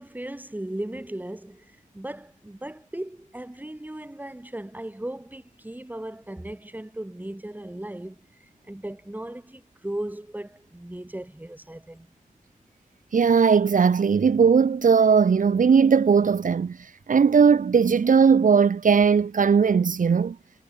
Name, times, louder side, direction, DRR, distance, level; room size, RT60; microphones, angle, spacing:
voice 1, 0.0-12.1, right 1 dB, 10° right, 7.4 m, -37 dB
voice 2, 13.1-20.4, right 6 dB, 70° right, 1.2 m, -18 dB
wide cardioid pair, 120°, 14 cm